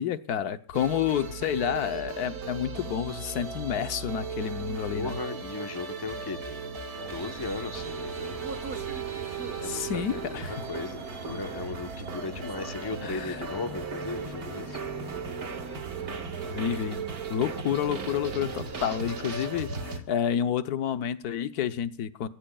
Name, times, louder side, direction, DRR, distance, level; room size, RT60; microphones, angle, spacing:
voice 1, 0.0-5.2 9.6-10.5 13.0-13.4 16.5-17.0 17.3-22.3, left 9 dB, 90° left, 11 dB, 1.4 m, -29 dB
sound 1, 0.7-20.0, right 4 dB, 75° right, 2.1 m, -37 dB
voice 2, 4.9-6.8 7.1-8.4 9.6-10.4 10.7-14.8, left 3 dB, 20° left, 8 dB, 0.9 m, -37 dB
sound 2, 7.0-19.5, right 4 dB, 40° right, 1.5 m, -43 dB
23.5 x 16.5 x 2.3 m, 0.34 s
omnidirectional pair, 1.6 m